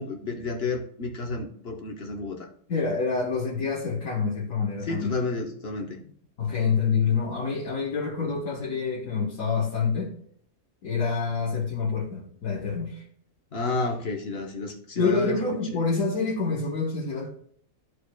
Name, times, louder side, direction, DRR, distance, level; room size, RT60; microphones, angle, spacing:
voice 1, 0.0-2.5 4.8-6.0 13.5-15.4 15.7-15.9, left 3 dB, 50° left, 2 dB, 1.1 m, -31 dB
voice 2, 2.7-5.1 6.4-10.1 10.8-13.0 15.0-17.3, left 5 dB, 85° left, -4 dB, 1.6 m, -27 dB
13.5 x 4.8 x 2.2 m, 0.64 s
omnidirectional pair, 1.4 m